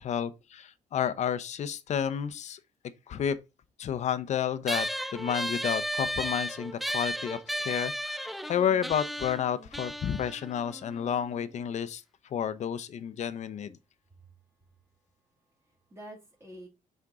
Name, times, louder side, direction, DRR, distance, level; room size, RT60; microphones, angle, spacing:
voice 1, 0.0-2.6 3.1-3.4 3.8-4.9 5.1-12.0 12.3-13.8, left 8 dB, 50° left, 0.7 m, -31 dB
sound 1, 4.7-11.5, equal, ahead, 0.3 m, -34 dB
voice 2, 15.3-16.7, right 1 dB, 15° right, 2.4 m, -49 dB
6.1 x 4.4 x 3.8 m
cardioid pair, 115°, 15 cm